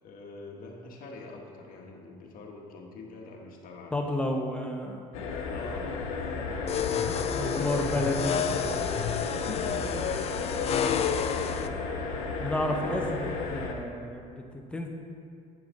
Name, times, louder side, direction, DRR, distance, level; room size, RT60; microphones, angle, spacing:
voice 1, 0.0-4.0 5.5-5.9 6.4-8.1 9.0-11.9, left 3 dB, 60° left, 0 dB, 1.4 m, -45 dB
voice 2, 3.9-5.0 7.3-8.4 12.4-14.9, left 1 dB, 5° left, 2 dB, 0.9 m, -31 dB
sound 1, 5.1-13.7, left 4 dB, 90° left, 0.9 m, -33 dB
sound 2, 6.7-11.7, left 8 dB, 40° left, 0.4 m, -30 dB
8.9 x 5.7 x 3.8 m, 2.4 s
supercardioid pair, 100°, 17 cm